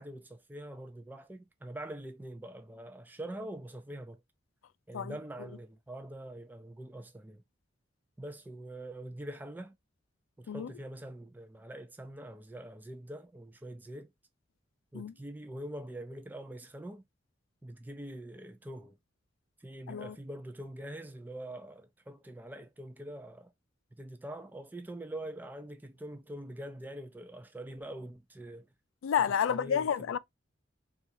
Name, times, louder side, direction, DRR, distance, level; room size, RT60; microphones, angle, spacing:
voice 1, 0.0-4.2 4.9-7.4 8.2-9.7 10.4-14.1 14.9-17.0 17.6-19.0 19.6-23.5 23.9-28.7 29.5-30.2, right 1 dB, 10° right, 0.3 m, -44 dB
voice 2, 29.0-30.2, left 8 dB, 85° left, 0.3 m, -30 dB
3.7 x 2.4 x 2.8 m
head